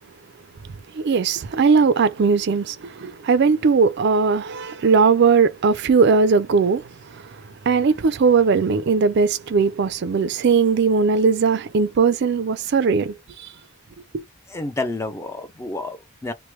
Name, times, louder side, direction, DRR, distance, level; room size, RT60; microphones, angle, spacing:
voice 1, 0.9-13.5 14.1-14.2, right 5 dB, 55° right, 0.4 m, -19 dB
voice 2, 14.5-16.3, left 2 dB, 15° left, 0.5 m, -29 dB
3.1 x 2.1 x 3.0 m
head